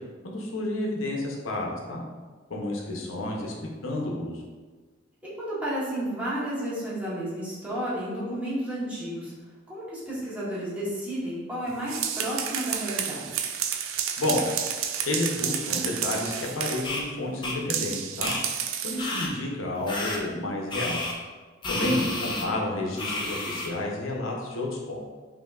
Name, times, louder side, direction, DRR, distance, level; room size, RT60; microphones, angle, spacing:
voice 1, 0.2-2.0 2.5-3.5 3.8-4.4 14.2-14.5 15.0-18.3 18.8-21.0 21.7-25.0, left 1 dB, 90° left, -1 dB, 0.8 m, -30 dB
voice 2, 5.2-9.3 9.7-13.4 21.6-22.4, right 1 dB, 10° right, -9 dB, 1.2 m, -32 dB
sound 1, 11.7-16.9 17.7-19.1, right 8 dB, 85° right, 0.4 m, -30 dB
sound 2, 16.8-17.0 17.4-17.6 18.2-18.4 19.0-19.3 19.9-20.2 20.7-21.1 21.6-22.4 23.0-23.7, left 2 dB, 25° left, 0.6 m, -31 dB
5.2 x 2.8 x 2.4 m, 1.4 s
head